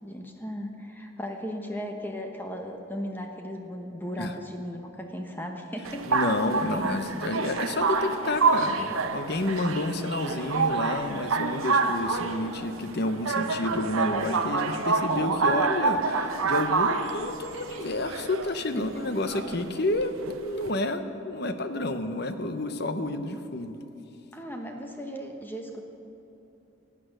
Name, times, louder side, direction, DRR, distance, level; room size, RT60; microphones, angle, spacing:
voice 1, 0.0-6.2 18.7-19.0 24.3-25.9, equal, 10° left, 3 dB, 1.0 m, -36 dB
sound 1, 5.8-20.7, right 4 dB, 80° right, 0.8 m, -28 dB
voice 2, 6.1-20.1 20.4-23.8, left 2 dB, 50° left, 9 dB, 0.8 m, -30 dB
17.5 x 8.6 x 6.5 m, 3.0 s
head